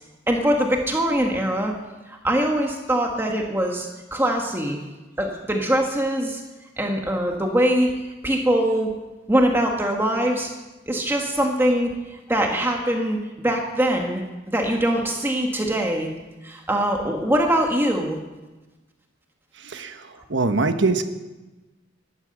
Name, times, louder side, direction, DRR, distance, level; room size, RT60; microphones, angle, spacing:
voice 1, 0.3-1.8 2.1-4.8 5.2-6.4 6.8-8.9 9.3-10.5 10.9-13.2 13.4-14.2 14.5-16.1 16.4-18.2, right 1 dB, 10° right, 1 dB, 1.5 m, -22 dB
voice 2, 19.6-21.0, right 3 dB, 65° right, 8 dB, 1.2 m, -23 dB
15.0 x 12.0 x 7.8 m, 1.1 s
head